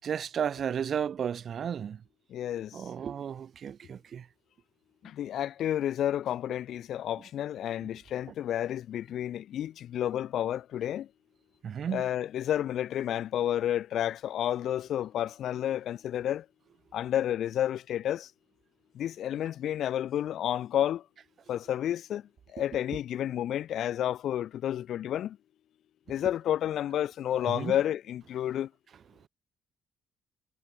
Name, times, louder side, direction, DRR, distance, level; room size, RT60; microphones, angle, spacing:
voice 1, 0.0-2.0 2.7-4.2 7.8-7.9 11.6-12.0 27.5-27.8, right 8 dB, 55° right, 6.7 m, -33 dB
voice 2, 2.3-2.8 5.0-11.1 11.9-16.4 16.9-18.3 19.0-21.0 21.5-22.2 22.5-25.4 26.1-28.7, left 11 dB, 75° left, 2.1 m, -30 dB
cardioid pair, 90°, 0 cm